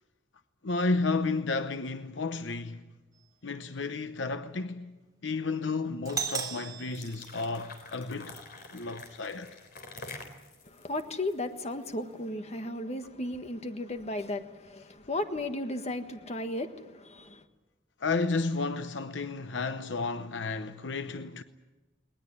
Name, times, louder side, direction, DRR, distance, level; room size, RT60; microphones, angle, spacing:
voice 1, 0.6-2.9 3.4-8.4 8.7-9.6 18.0-21.4, left 3 dB, 70° left, 0.8 m, -32 dB
Doorbell, 6.1-8.0, right 6 dB, 20° right, 3.2 m, -37 dB
sound 1, 6.8-12.0, left 3 dB, 55° left, 3.5 m, -47 dB
voice 2, 10.6-17.4, left 1 dB, 35° left, 1.5 m, -35 dB
20.0 x 20.0 x 9.9 m
head